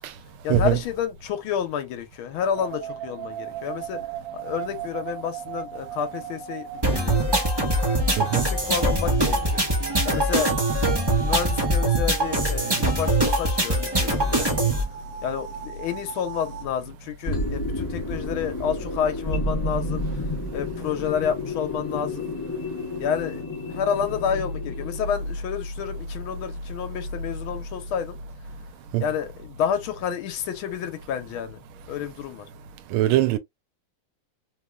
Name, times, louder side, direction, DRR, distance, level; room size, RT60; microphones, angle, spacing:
voice 1, 0.4-4.0 4.3-7.1 8.1-9.6 10.0-14.6 15.2-20.2 20.5-22.3 23.0-28.2 29.0-31.6 31.9-32.5, left 8 dB, 80° left, 1.5 m, -30 dB
sound 1, 2.6-16.7, right 6 dB, 55° right, 1.2 m, -37 dB
sound 2, 6.8-14.8, right 1 dB, 20° right, 0.6 m, -23 dB
sound 3, 13.5-14.2 14.7-14.8 17.3-25.1, left 1 dB, 10° left, 1.0 m, -31 dB
voice 2, 32.9-33.4, right 12 dB, 90° right, 1.5 m, -21 dB
3.6 x 3.1 x 2.2 m
omnidirectional pair, 2.3 m